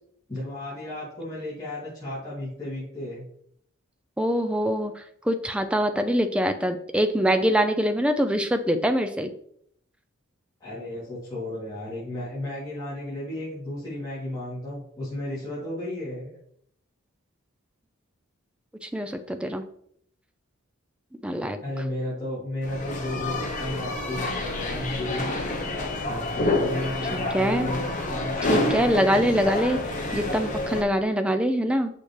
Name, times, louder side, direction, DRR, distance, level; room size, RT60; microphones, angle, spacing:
voice 1, 0.3-3.2 10.6-16.3 21.6-25.3 26.1-29.0, left 1 dB, 20° left, -11 dB, 2.8 m, -33 dB
voice 2, 4.2-9.3 18.8-19.7 21.2-21.6 27.3-27.7 28.5-29.8 30.1-31.9, equal, 5° right, 7 dB, 0.5 m, -24 dB
sound 1, 22.6-30.8, left 2 dB, 35° left, 0.9 m, -28 dB
7.2 x 6.4 x 3.3 m, 0.68 s
head